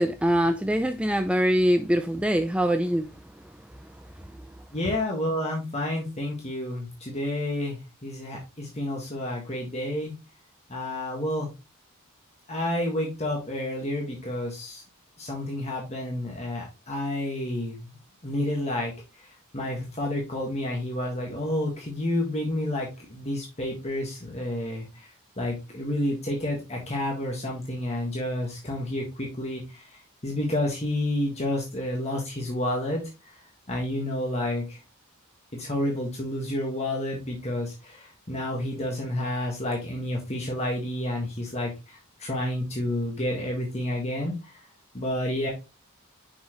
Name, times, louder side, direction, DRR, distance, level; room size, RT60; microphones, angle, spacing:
voice 1, 0.0-3.1, equal, 5° right, 0.3 m, -23 dB
voice 2, 4.7-10.1 10.7-11.5 12.5-14.8 15.2-17.9 18.2-18.9 19.5-25.1 25.4-29.9 30.2-33.0 33.7-34.8 35.5-44.3 44.9-45.5, left 1 dB, 30° left, 1.6 m, -30 dB
6.2 x 5.6 x 3.0 m
head